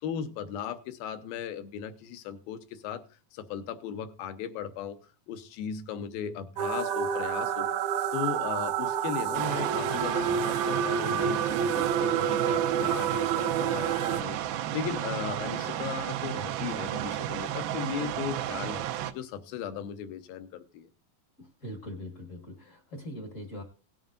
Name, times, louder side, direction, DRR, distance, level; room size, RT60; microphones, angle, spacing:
voice 1, 0.0-3.0 3.3-5.0 5.3-7.7 8.1-14.4 14.7-18.8 19.1-20.9, left 8 dB, 80° left, 10 dB, 2.6 m, -37 dB
sound 1, 6.6-14.2, right 8 dB, 70° right, 1.9 m, -29 dB
sound 2, 9.3-19.1, right 12 dB, 90° right, 2.6 m, -33 dB
voice 2, 21.4-23.6, equal, 45° left, 4 dB, 0.9 m, -41 dB
18.0 x 9.1 x 2.5 m, 0.33 s
omnidirectional pair, 4.1 m